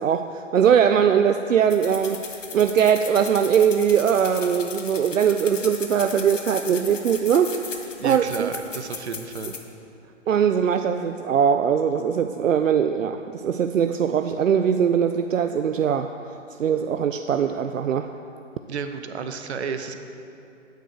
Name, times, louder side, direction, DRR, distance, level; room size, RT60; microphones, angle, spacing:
voice 1, 0.0-2.3 2.5-7.5 8.0-8.5 10.3-18.1, right 8 dB, 80° right, 8 dB, 0.5 m, -21 dB
sound 1, 1.7-9.6, left 4 dB, 75° left, 1.3 m, -37 dB
voice 2, 8.0-9.5 18.7-19.9, right 5 dB, 60° right, 8 dB, 0.9 m, -32 dB
9.4 x 8.6 x 4.5 m, 2.7 s
figure-of-eight pair, 140°, 38 cm